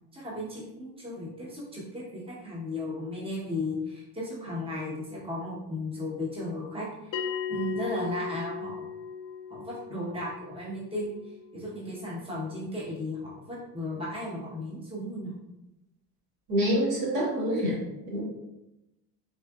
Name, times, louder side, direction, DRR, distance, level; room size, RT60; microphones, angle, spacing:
voice 1, 0.1-7.1 7.5-8.8 9.5-11.1 11.5-15.3, left 1 dB, 15° right, -6 dB, 1.1 m, -35 dB
Bell, 7.1-12.2, left 7 dB, 50° left, 0.5 m, -37 dB
voice 2, 16.5-17.8 18.1-18.2, equal, 80° right, -5 dB, 1.5 m, -26 dB
3.7 x 2.4 x 2.4 m, 0.90 s
supercardioid pair, 105°, 43 cm